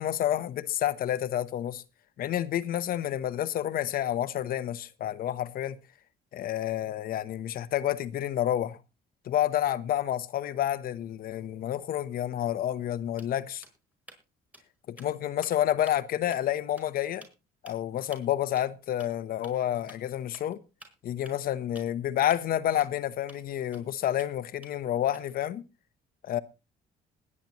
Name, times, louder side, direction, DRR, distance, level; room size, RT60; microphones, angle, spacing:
voice 1, 0.0-1.8 2.2-5.8 6.3-8.8 9.2-13.6 14.9-17.3 17.6-20.6 21.0-25.6 26.2-26.4, left 11 dB, 60° left, 1.0 m, -29 dB
sound 1, 12.8-12.9 13.2-14.2 14.5-14.7 15.0-15.5 15.9-16.1 16.3-16.4 16.8-16.9 17.2-17.3 17.7-17.8 18.1-18.2 18.6-18.7 19.0-19.1 19.4-19.5 19.9-20.0 20.3-20.5 20.8-21.9 22.3-22.4 22.8-22.9 23.3-23.4 23.7-24.3 24.6-25.4, right 1 dB, 10° right, 5.1 m, -51 dB
20.5 x 9.9 x 3.0 m
cardioid pair, 110°, 17 cm